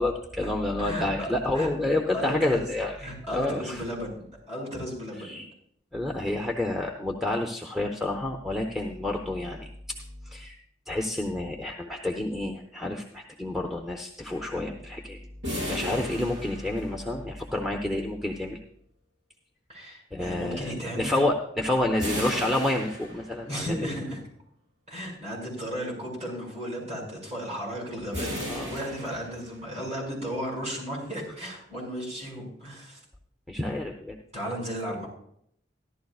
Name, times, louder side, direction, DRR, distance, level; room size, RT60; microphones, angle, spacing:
voice 1, 0.0-2.9 3.3-3.8 5.2-5.5 5.9-9.7 10.2-10.6 10.9-15.2 15.7-18.6 20.1-23.9 28.5-28.7 33.5-34.2, left 1 dB, ahead, -1 dB, 0.6 m, -29 dB
voice 2, 0.8-1.7 2.1-2.6 3.0-5.4 19.7-21.2 21.7-21.9 23.4-24.2 24.9-33.0 34.3-35.1, equal, 35° right, -5 dB, 5.4 m, -34 dB
sound 1, 15.4-17.3 22.0-23.6 28.1-29.8, left 1 dB, 70° right, 5.1 m, -35 dB
14.5 x 12.0 x 2.4 m, 0.69 s
head